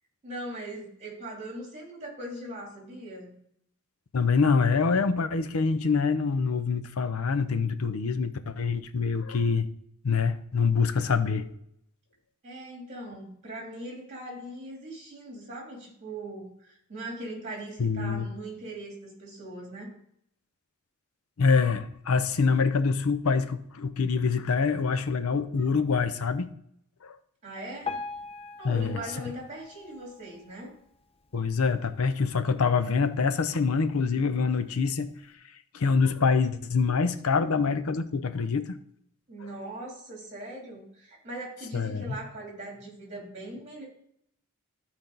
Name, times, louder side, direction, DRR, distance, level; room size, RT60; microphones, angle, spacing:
voice 1, 0.2-3.4 12.4-19.9 27.4-28.0 28.6-30.8 39.3-43.8, right 1 dB, 30° right, -2 dB, 3.1 m, -40 dB
voice 2, 4.1-9.7 10.0-11.5 17.8-18.3 21.4-26.5 27.0-27.2 28.6-29.0 31.3-35.1 35.7-38.8 41.7-42.2, left 5 dB, 85° left, 10 dB, 0.6 m, -25 dB
Piano, 27.8-31.0 31.5-31.6 31.9-32.0 32.7-32.8 33.4-33.5, left 4 dB, 25° left, 0.5 m, -40 dB
13.0 x 4.4 x 3.9 m, 0.71 s
head